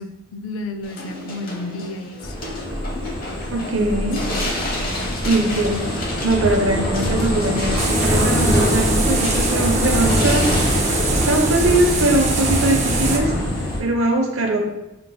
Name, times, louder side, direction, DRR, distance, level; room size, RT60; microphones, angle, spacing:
voice 1, 0.0-2.4 2.9-3.3 3.7-5.6, left 2 dB, 90° left, 7 dB, 0.5 m, -33 dB
sound 1, 0.8-13.8, left 1 dB, 45° left, 0.8 m, -33 dB
sound 2, 2.2-13.8, equal, 20° left, 1.2 m, -23 dB
voice 2, 3.5-4.2 5.2-5.9 6.2-10.5 11.1-13.3 13.8-14.6, right 2 dB, 80° right, 3 dB, 0.7 m, -21 dB
sound 3, 7.8-13.2, right 4 dB, 35° right, 0.5 m, -26 dB
5.8 x 3.3 x 2.2 m, 0.94 s
head